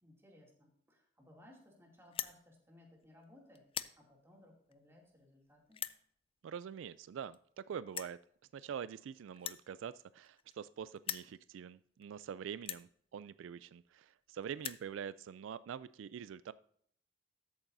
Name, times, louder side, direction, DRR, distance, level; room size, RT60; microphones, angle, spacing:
voice 1, 0.0-3.6 3.9-5.8, left 1 dB, 15° right, -1 dB, 2.5 m, -61 dB
sound 1, 2.0-2.4 3.0-3.2 3.6-4.0 4.7-4.8 5.7-6.0 7.0-7.1 7.3-7.4 7.9-8.2 9.3-10.7 11.0-11.3 12.0-12.1 12.6-12.9 13.8-13.9 14.1-14.2 14.4-14.9, left 10 dB, 30° left, 0.4 m, -42 dB
voice 2, 6.4-8.2 8.5-16.5, right 8 dB, 80° right, 16 dB, 0.3 m, -45 dB
13.0 x 8.7 x 2.6 m, 0.65 s
head